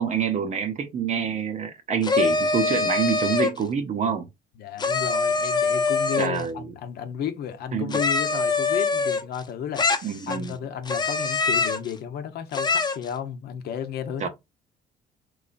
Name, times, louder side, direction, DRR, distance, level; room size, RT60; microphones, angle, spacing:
voice 1, 0.0-4.3 6.2-6.7 7.7-8.0 10.0-10.5 14.2-14.3, right 7 dB, 45° right, 0.7 m, -26 dB
sound 1, 2.0-3.6 4.8-6.4 7.9-9.4 9.8-10.5 10.8-11.9 12.5-13.1, left 4 dB, 25° left, 0.8 m, -24 dB
voice 2, 4.6-14.3, left 8 dB, 70° left, 0.8 m, -33 dB
3.8 x 3.1 x 2.4 m
cardioid pair, 110°, 17 cm